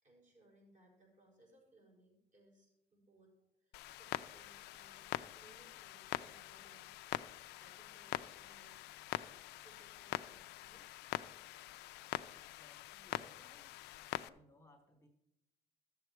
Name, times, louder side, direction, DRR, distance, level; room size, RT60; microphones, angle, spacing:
voice 1, 0.0-7.0 7.5-9.0 9.4-11.0, right 2 dB, 45° right, -2 dB, 5.1 m, -67 dB
Clock, 3.7-14.3, left 16 dB, 85° left, 0.4 m, -44 dB
voice 2, 12.1-13.8 14.2-15.1, left 1 dB, 15° left, 4 dB, 1.0 m, -65 dB
13.0 x 7.1 x 4.6 m, 0.85 s
cardioid pair, 110°, 17 cm